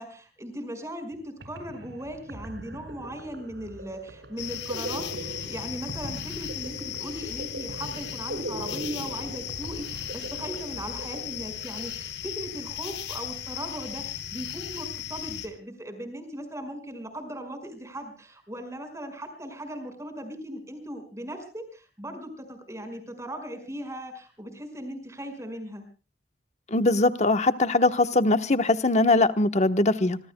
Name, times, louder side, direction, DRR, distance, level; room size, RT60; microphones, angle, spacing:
voice 1, 0.0-25.8, right 1 dB, 15° right, 7 dB, 5.4 m, -38 dB
sound 1, 1.1-1.2 1.4-12.0, right 1 dB, 85° right, 6.1 m, -40 dB
sound 2, 4.4-15.5, left 10 dB, 80° left, 4.3 m, -36 dB
voice 2, 26.7-30.2, left 2 dB, 40° left, 9 dB, 1.1 m, -21 dB
25.5 x 24.5 x 2.2 m, 0.36 s
head